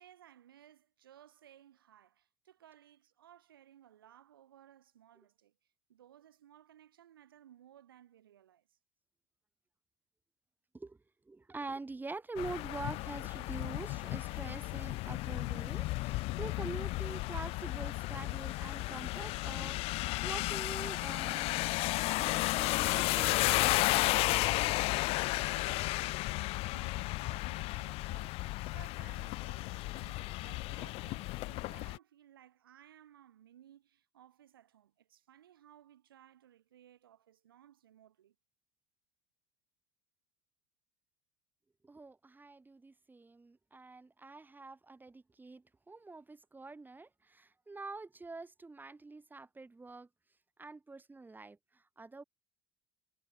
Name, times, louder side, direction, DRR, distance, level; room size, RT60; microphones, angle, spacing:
voice 1, 0.0-5.5 5.9-8.8 25.4-38.4, right 11 dB, 80° right, 7.0 m, -60 dB
voice 2, 11.3-24.7 41.8-50.1 50.6-52.2, right 3 dB, 15° right, 5.6 m, -46 dB
sound 1, 12.4-32.0, left 21 dB, 55° left, 1.1 m, -33 dB
hypercardioid pair, 70°, 12 cm